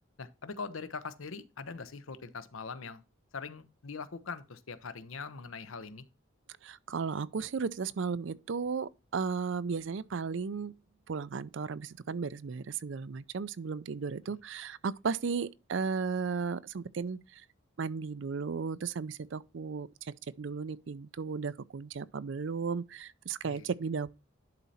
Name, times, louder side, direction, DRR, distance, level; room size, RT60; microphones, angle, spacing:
voice 1, 0.2-3.0 3.3-6.0 14.3-14.4 23.4-23.7, left 4 dB, 80° left, 0.8 m, -42 dB
voice 2, 6.6-10.7 11.1-17.4 17.8-19.9 20.4-24.1, right 5 dB, 65° right, 0.4 m, -35 dB
11.0 x 4.2 x 4.1 m
head